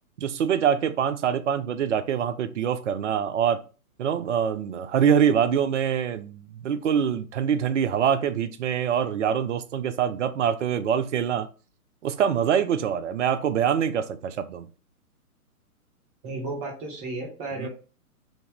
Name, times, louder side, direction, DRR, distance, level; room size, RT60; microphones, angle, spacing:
voice 1, 0.2-3.6 4.0-11.5 12.0-14.7 17.6-17.7, right 8 dB, 55° right, 0.5 m, -24 dB
voice 2, 16.2-17.7, right 2 dB, 25° right, 1.2 m, -33 dB
3.0 x 2.8 x 3.3 m
figure-of-eight pair, 125°, 45 cm